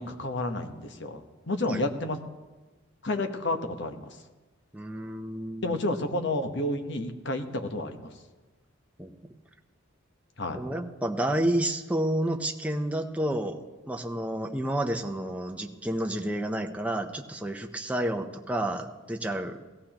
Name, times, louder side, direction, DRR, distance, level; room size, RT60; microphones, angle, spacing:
voice 1, 0.0-2.2 3.0-4.2 5.6-8.1 10.4-10.6, left 2 dB, 60° left, 6 dB, 1.1 m, -31 dB
voice 2, 4.7-5.8 9.0-9.1 10.5-13.6 13.9-19.6, right 1 dB, 5° right, 3 dB, 0.7 m, -30 dB
17.5 x 15.0 x 3.0 m, 1.2 s
head